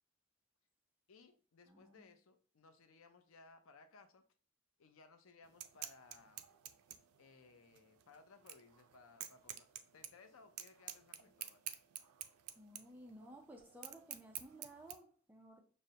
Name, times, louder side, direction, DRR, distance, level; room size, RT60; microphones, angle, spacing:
voice 1, 1.1-4.2 4.8-6.4 7.2-9.7 9.9-11.6, left 4 dB, 70° left, 0.5 m, -62 dB
voice 2, 1.7-2.1 12.6-15.6, right 1 dB, 10° right, 0.5 m, -56 dB
sound 1, 5.4-14.9, right 11 dB, 90° right, 0.4 m, -50 dB
6.3 x 2.1 x 2.8 m
head